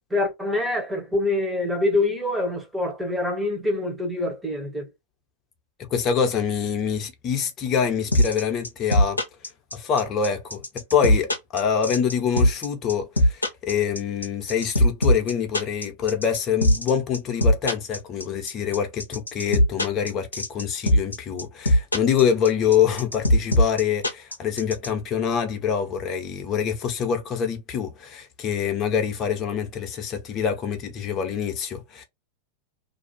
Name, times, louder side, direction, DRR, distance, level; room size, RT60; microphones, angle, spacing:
voice 1, 0.1-4.9, left 2 dB, 5° right, 1.0 m, -25 dB
voice 2, 5.9-9.2 9.7-32.0, left 7 dB, 30° left, 0.8 m, -25 dB
sound 1, 8.1-24.9, left 1 dB, 80° left, 0.6 m, -20 dB
2.6 x 2.3 x 2.8 m
figure-of-eight pair, 90°, 0 cm